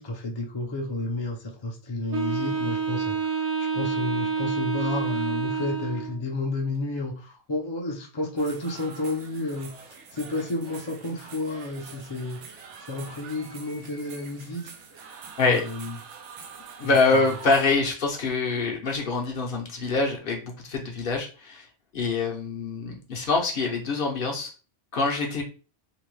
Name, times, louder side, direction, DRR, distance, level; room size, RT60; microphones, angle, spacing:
voice 1, 0.0-9.7 10.1-16.0 16.8-17.4, left 2 dB, 35° left, 0 dB, 0.5 m, -32 dB
Wind instrument woodwind instrument, 2.1-6.2, right 5 dB, 60° right, 0.8 m, -28 dB
sound 1, 8.4-17.8, right 6 dB, 90° right, 0.9 m, -45 dB
voice 2, 16.8-21.7 21.9-24.5 24.9-25.4, left 3 dB, 55° left, 0 dB, 0.8 m, -25 dB
2.7 x 2.2 x 3.1 m, 0.35 s
omnidirectional pair, 1.2 m